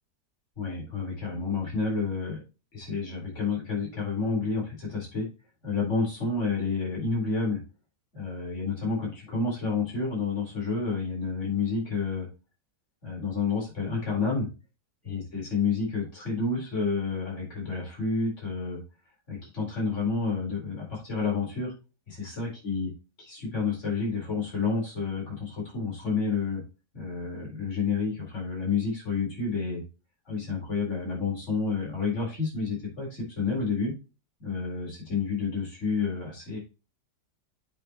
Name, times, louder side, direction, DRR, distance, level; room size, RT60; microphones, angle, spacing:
voice 1, 0.6-2.4 2.7-5.3 5.6-7.6 8.1-12.3 13.0-14.5 15.0-18.8 19.3-21.7 22.1-22.9 23.2-26.6 26.9-29.8 30.3-33.9 34.4-36.6, left 4 dB, 40° left, -2 dB, 4.6 m, -30 dB
8.2 x 6.2 x 3.0 m, 0.29 s
omnidirectional pair, 1.8 m